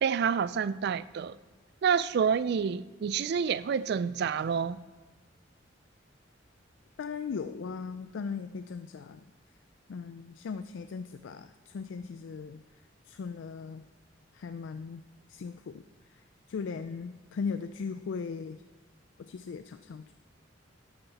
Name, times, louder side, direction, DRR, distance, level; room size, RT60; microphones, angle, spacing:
voice 1, 0.0-1.3 1.8-4.8, right 7 dB, 55° right, 0.3 m, -28 dB
voice 2, 7.0-9.2 9.9-13.8 14.3-15.0 15.3-18.6 19.2-20.1, left 5 dB, 70° left, 0.4 m, -38 dB
12.0 x 11.0 x 4.1 m
head